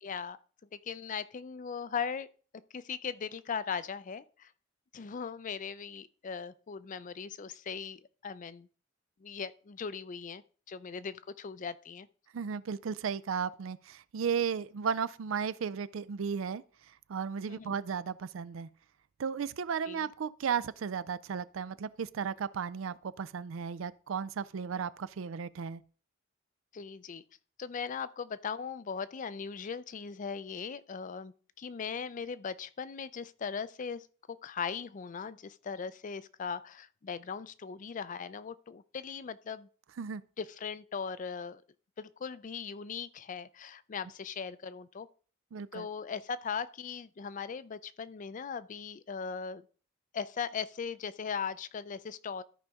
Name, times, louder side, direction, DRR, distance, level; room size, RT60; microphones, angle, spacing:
voice 1, 0.0-0.4 0.8-2.3 2.7-4.5 4.9-8.7 9.2-10.4 10.7-12.1 17.5-17.8 19.9-20.1 26.7-27.2 27.6-34.1 34.4-39.7 40.4-41.6 42.0-45.1 45.7-49.6 50.1-52.4, left 6 dB, 40° left, 0.4 m, -39 dB
voice 2, 12.3-16.6 17.1-18.7 19.2-25.8 40.0-40.2 45.5-45.9, right 6 dB, 80° right, 0.4 m, -35 dB
13.0 x 5.2 x 3.5 m
head